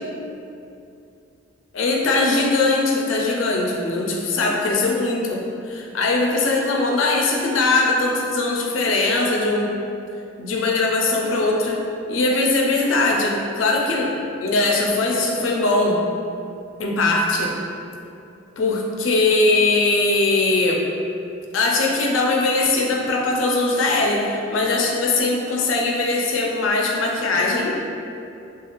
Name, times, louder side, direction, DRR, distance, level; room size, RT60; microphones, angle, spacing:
voice 1, 1.7-9.7 10.4-11.8 12.1-14.1 14.4-16.0 16.8-17.5 18.6-20.8 21.5-27.8, left 2 dB, 85° left, 0 dB, 0.4 m, -20 dB
2.4 x 2.3 x 2.9 m, 2.6 s
head